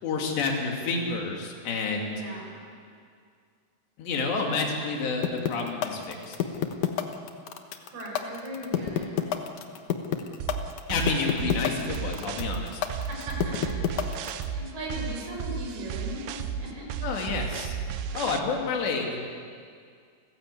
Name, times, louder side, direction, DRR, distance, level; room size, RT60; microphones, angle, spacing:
voice 1, 0.0-2.1 4.0-6.4 10.9-12.8 17.0-17.8 18.1-19.2, left 4 dB, 85° left, 1 dB, 4.8 m, -29 dB
voice 2, 2.1-2.5 7.8-9.4 13.3-13.7 14.4-16.9, equal, 65° right, -2 dB, 8.1 m, -38 dB
sound 1, 5.2-14.4, left 11 dB, 65° left, 2.0 m, -27 dB
sound 2, 10.4-18.4, right 7 dB, 80° right, 3.0 m, -34 dB
29.5 x 15.5 x 8.4 m, 2.2 s
omnidirectional pair, 4.8 m